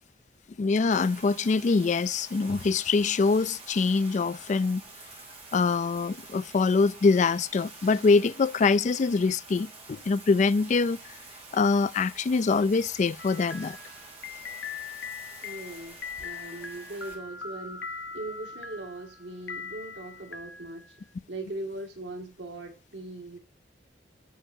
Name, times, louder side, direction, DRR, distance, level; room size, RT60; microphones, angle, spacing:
voice 1, 0.6-4.8 5.5-11.1 11.5-13.8, left 4 dB, 40° left, 0.3 m, -24 dB
Bathtub (filling or washing), 0.9-17.1, right 3 dB, 35° right, 2.9 m, -48 dB
sound 1, 13.2-21.1, left 5 dB, 75° left, 0.8 m, -41 dB
voice 2, 15.4-21.0 21.3-23.4, right 2 dB, 90° right, 2.1 m, -40 dB
15.0 x 5.6 x 2.7 m
head